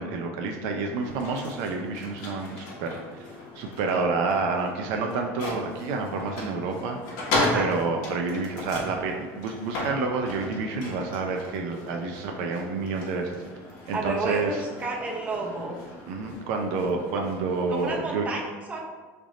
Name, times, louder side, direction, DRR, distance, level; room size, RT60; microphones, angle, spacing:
voice 1, 0.0-3.3 3.5-7.2 7.5-13.4 13.9-14.6 16.1-18.3, right 4 dB, 70° right, 3 dB, 0.5 m, -29 dB
sound 1, 0.9-18.1, left 2 dB, 70° left, 1.1 m, -36 dB
voice 2, 13.9-15.8 17.7-18.8, right 2 dB, 20° right, -1 dB, 0.6 m, -31 dB
3.3 x 2.5 x 4.0 m, 1.3 s
cardioid pair, 135°, 7 cm